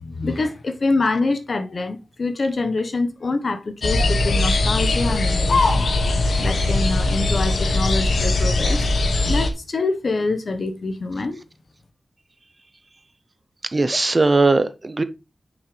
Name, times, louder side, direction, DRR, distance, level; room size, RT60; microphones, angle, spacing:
voice 1, 0.0-5.9 6.4-8.8 9.3-11.4, left 3 dB, 60° left, 1.1 m, -25 dB
sound 1, 3.8-9.5, left 2 dB, 85° left, 1.2 m, -20 dB
voice 2, 13.7-15.0, right 3 dB, 35° right, 0.7 m, -18 dB
8.9 x 6.2 x 3.3 m
wide cardioid pair, 95°, 0 cm